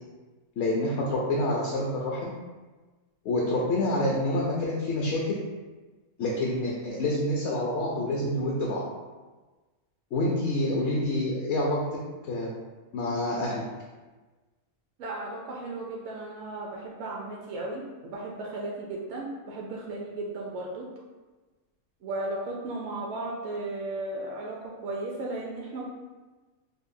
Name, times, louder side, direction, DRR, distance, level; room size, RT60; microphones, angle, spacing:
voice 1, 0.6-2.3 3.2-5.4 6.2-8.8 10.1-11.8 12.3-12.5 12.9-13.6, left 1 dB, 65° left, -3 dB, 0.8 m, -27 dB
voice 2, 15.0-20.9 22.0-25.8, right 2 dB, 65° right, -3 dB, 0.8 m, -35 dB
5.3 x 2.1 x 2.6 m, 1.2 s
omnidirectional pair, 1.4 m